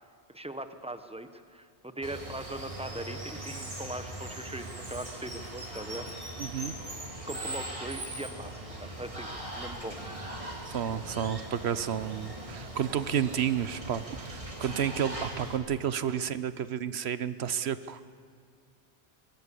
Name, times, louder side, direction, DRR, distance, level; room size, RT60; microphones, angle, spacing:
voice 1, 0.3-6.0 7.3-10.0 10.3-10.4 15.9-16.2, right 1 dB, 5° right, 9 dB, 1.0 m, -40 dB
Water, 2.0-15.6, right 1 dB, 30° right, 3.0 m, -40 dB
voice 2, 6.4-6.8 10.6-18.0, right 9 dB, 65° right, 14 dB, 1.1 m, -31 dB
24.5 x 19.0 x 8.5 m, 2.1 s
omnidirectional pair, 1.2 m